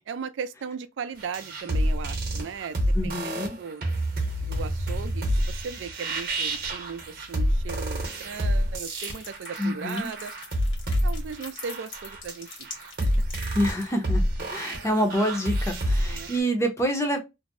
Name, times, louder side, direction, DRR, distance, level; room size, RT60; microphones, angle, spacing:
voice 1, 0.1-3.9 4.4-10.3 11.0-13.1 14.6-14.9 15.9-16.3, right 6 dB, 85° right, 0.4 m, -37 dB
sound 1, 1.2-16.4, equal, 55° right, 0.8 m, -28 dB
voice 2, 3.0-3.6 9.6-10.1 13.5-17.2, equal, 15° left, 0.5 m, -27 dB
sound 2, 8.9-13.9, left 4 dB, 75° left, 1.1 m, -43 dB
2.6 x 2.0 x 2.5 m
head